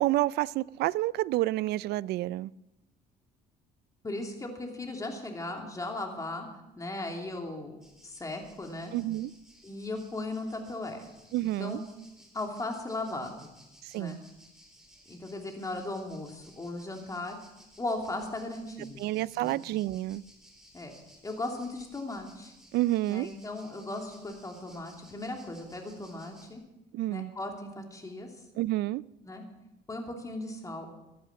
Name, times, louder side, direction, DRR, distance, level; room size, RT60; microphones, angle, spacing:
voice 1, 0.0-2.5 8.9-9.3 11.3-11.8 13.8-14.2 19.0-20.2 22.7-23.3 26.9-27.3 28.6-29.0, right 16 dB, 75° right, 22 dB, 0.4 m, -29 dB
voice 2, 4.0-6.5 6.8-8.9 9.6-11.0 11.4-11.8 12.3-13.5 13.9-14.2 15.1-17.4 17.8-19.0 19.4-19.6 20.7-20.9 21.2-22.5 23.1-26.6 27.1-28.3 29.2-29.4 29.9-30.9, left 2 dB, 20° left, 2 dB, 2.9 m, -37 dB
sound 1, 7.8-26.5, equal, 5° right, 3.8 m, -58 dB
15.5 x 11.0 x 6.1 m, 0.94 s
cardioid pair, 110°, 17 cm